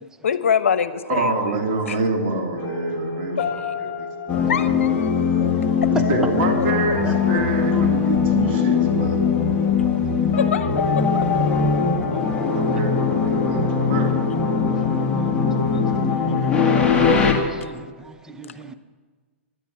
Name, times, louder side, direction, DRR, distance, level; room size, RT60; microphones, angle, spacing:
voice 1, 0.0-1.6 1.9-2.0 3.4-3.7 4.5-5.5 5.9-6.7 10.4-11.3 11.5-11.6, left 7 dB, 80° left, 12 dB, 1.0 m, -26 dB
voice 2, 1.1-3.6 4.0-4.1 5.9-9.4 12.6-14.2, right 3 dB, 45° right, 0 dB, 3.1 m, -26 dB
sound 1, 2.6-15.9, left 2 dB, 35° left, 5.0 m, -32 dB
sound 2, 4.3-17.3, left 6 dB, 15° left, 2.2 m, -21 dB
voice 3, 15.7-16.1 17.5-18.7, right 3 dB, 10° right, 10 dB, 0.7 m, -40 dB
11.0 x 10.0 x 9.9 m, 1.5 s
hypercardioid pair, 130°, 7 cm